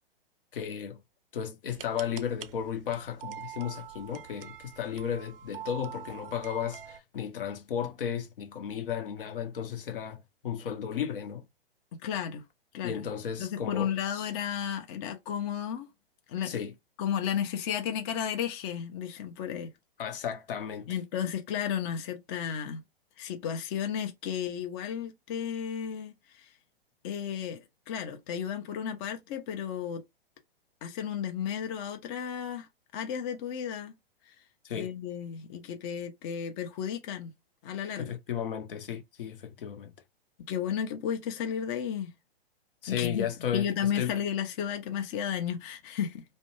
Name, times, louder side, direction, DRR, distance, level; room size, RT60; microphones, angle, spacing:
voice 1, 0.5-1.0 1.3-11.4 12.8-14.3 16.4-16.7 20.0-21.0 34.6-34.9 38.0-39.9 42.8-44.1, left 8 dB, 60° left, 0.7 m, -34 dB
sound 1, 1.7-7.0, right 11 dB, 65° right, 0.5 m, -45 dB
voice 2, 12.0-12.4 12.7-13.1 13.4-15.9 16.3-16.6 17.0-19.7 20.9-22.8 23.2-26.5 27.0-30.0 30.8-33.9 34.3-34.4 34.7-37.3 37.6-38.1 40.4-42.1 42.9-43.3 43.5-46.2, left 8 dB, 25° left, 0.4 m, -33 dB
2.5 x 2.0 x 2.9 m
figure-of-eight pair, 115°, 30 cm